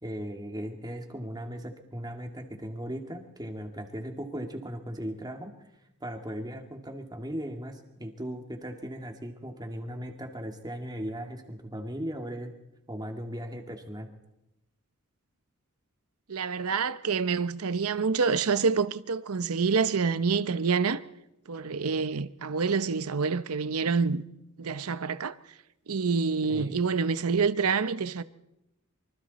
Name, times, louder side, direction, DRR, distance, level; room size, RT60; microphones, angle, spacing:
voice 1, 0.0-5.5 6.0-12.5 12.9-14.1 26.4-26.8, equal, 20° right, 2.2 m, -37 dB
voice 2, 16.3-21.0 21.5-24.2 24.6-25.4 25.9-28.2, right 5 dB, 90° right, 0.8 m, -27 dB
25.0 x 24.5 x 4.2 m
head